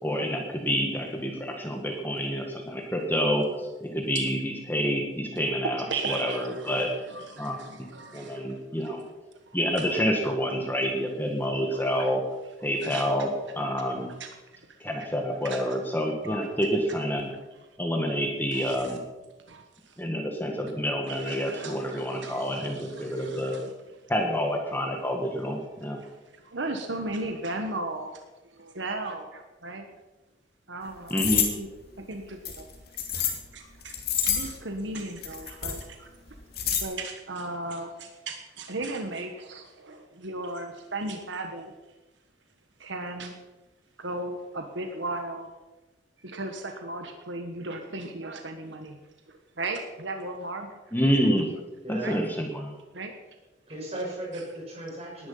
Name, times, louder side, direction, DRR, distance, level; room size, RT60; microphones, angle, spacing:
voice 1, 0.0-6.9 7.4-7.6 8.1-9.0 9.5-12.2 12.6-13.3 13.5-14.1 14.8-17.3 17.8-19.0 20.0-23.5 24.1-26.0 31.1-31.4 50.9-51.5 51.9-52.7, equal, 10° left, 2 dB, 1.6 m, -28 dB
voice 2, 5.7-8.5 8.8-9.0 9.4-10.0 11.7-12.1 12.8-13.1 14.2-14.6 15.0-15.1 15.4-15.6 16.2-16.4 18.5-18.9 19.5-20.0 21.1-23.7 26.0-28.2 28.5-29.9 30.7-31.7 32.1-32.7 33.1-33.9 34.2-36.1 36.7-41.7 42.8-43.4 44.0-45.5 46.2-49.0 49.3-50.7 52.0-52.2 52.9-53.1, right 2 dB, 70° right, 5 dB, 1.4 m, -36 dB
sound 1, 31.1-31.5 32.4-33.4 33.8-34.6 35.2-35.8 36.3-36.8, left 8 dB, 55° left, 2.8 m, -27 dB
voice 3, 51.8-52.2 53.7-55.3, right 1 dB, 35° right, -2 dB, 6.1 m, -36 dB
19.0 x 10.5 x 5.7 m, 1.1 s
head